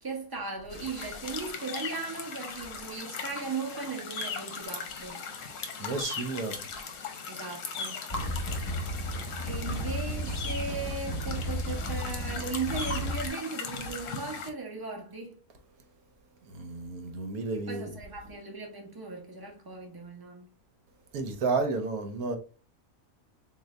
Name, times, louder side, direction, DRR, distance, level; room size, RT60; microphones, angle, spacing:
voice 1, 0.0-5.2 7.3-8.1 9.4-15.4 17.5-20.5, right 4 dB, 20° right, 0.7 m, -37 dB
sound 1, 0.7-14.5, left 5 dB, 65° left, 1.0 m, -39 dB
voice 2, 5.8-6.7 9.1-9.2 9.7-9.8 16.4-18.0 21.1-22.4, right 3 dB, 75° right, 1.2 m, -32 dB
sound 2, 8.1-13.3, equal, 15° left, 1.1 m, -34 dB
3.8 x 2.7 x 3.2 m
omnidirectional pair, 1.6 m